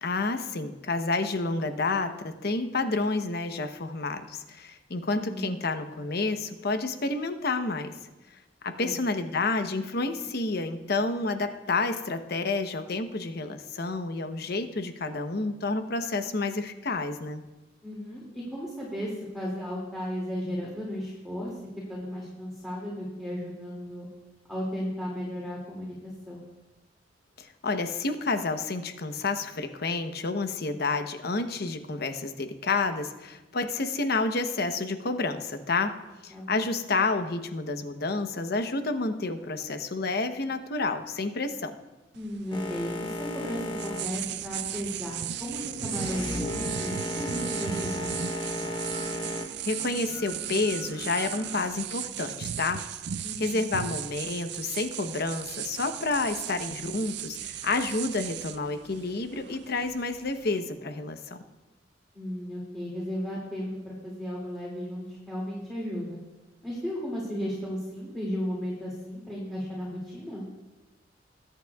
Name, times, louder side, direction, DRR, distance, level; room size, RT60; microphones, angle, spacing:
voice 1, 0.0-7.9 8.6-17.4 27.4-35.9 36.2-41.7 49.6-52.8 53.4-61.4, left 3 dB, 60° left, 7 dB, 0.9 m, -29 dB
voice 2, 5.1-5.5 8.8-8.9 17.8-21.5 21.9-24.1 24.5-26.4 36.3-36.6 42.1-48.4 53.2-53.6 62.1-66.2 66.6-70.4, equal, ahead, -6 dB, 2.4 m, -35 dB
sound 1, 42.1-60.6, right 10 dB, 65° right, 0.4 m, -37 dB
Boat Water vehicle, 42.5-49.5, left 1 dB, 25° left, 1.1 m, -35 dB
sound 2, 45.4-51.7, right 2 dB, 85° right, 1.3 m, -44 dB
21.0 x 9.0 x 2.3 m, 1.1 s
head